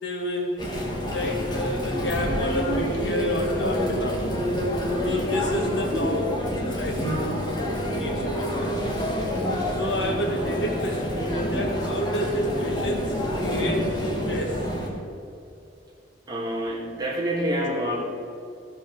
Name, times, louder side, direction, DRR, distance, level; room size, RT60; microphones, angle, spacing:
voice 1, 0.0-4.3 5.0-8.8 9.8-13.9 14.3-14.6, left 1 dB, 80° left, 1 dB, 1.8 m, -30 dB
Chatter, 0.6-14.9, equal, 25° left, 1.8 m, -27 dB
voice 2, 16.3-18.0, equal, 25° right, -3 dB, 2.1 m, -27 dB
14.5 x 5.4 x 6.4 m, 2.7 s
head